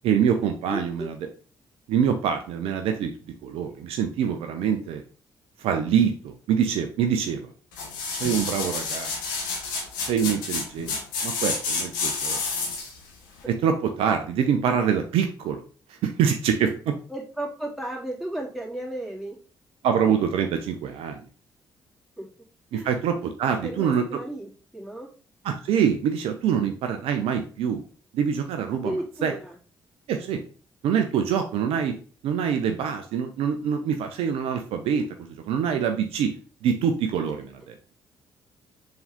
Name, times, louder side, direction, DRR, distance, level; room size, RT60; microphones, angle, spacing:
voice 1, 0.0-1.2 1.9-3.1 3.4-5.0 5.6-7.5 8.1-9.1 10.0-11.0 11.2-12.4 13.5-15.6 15.9-16.9 19.8-21.2 22.7-24.0 25.4-27.8 28.1-28.9 29.2-29.3 30.1-30.4 30.8-32.0 32.2-36.3 36.6-37.8, right 7 dB, 65° right, 6 dB, 0.7 m, -25 dB
voice 2, 0.7-1.1 17.1-19.4 22.2-22.3 22.7-22.9 23.5-25.1 28.7-29.6, right 1 dB, ahead, -4 dB, 2.9 m, -34 dB
sound 1, 7.7-13.0 13.4-13.5, left 4 dB, 80° left, 1.5 m, -29 dB
7.0 x 3.8 x 3.5 m, 0.39 s
figure-of-eight pair, 40°, 11 cm